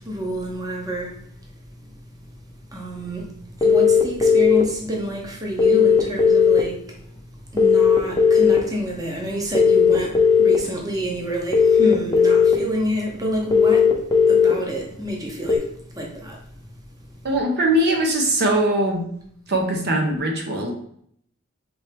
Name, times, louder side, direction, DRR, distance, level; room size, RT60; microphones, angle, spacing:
voice 1, 0.0-16.5 16.9-17.3, equal, 15° right, 0.8 m, -29 dB
sound 1, 3.6-4.6 5.6-6.6 7.6-8.6 9.6-10.6 11.5-12.5 13.5-14.5 15.5-15.6, left 6 dB, 20° left, 0.6 m, -15 dB
voice 2, 17.2-19.1 19.5-20.7, right 1 dB, 50° right, 0.8 m, -21 dB
4.4 x 3.2 x 3.3 m
head